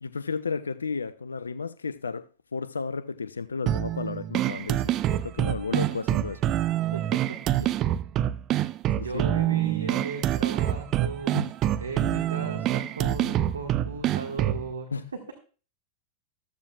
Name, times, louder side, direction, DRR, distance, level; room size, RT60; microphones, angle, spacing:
voice 1, 0.0-6.4 9.0-9.6 11.3-11.5 14.9-15.1, left 5 dB, 75° left, 0.4 m, -33 dB
sound 1, 3.7-14.7, right 12 dB, 35° right, 0.5 m, -26 dB
voice 2, 6.8-7.7 9.0-11.4 11.8-15.3, right 3 dB, 75° right, 1.5 m, -37 dB
14.0 x 13.5 x 2.3 m
figure-of-eight pair, 90°, 0 cm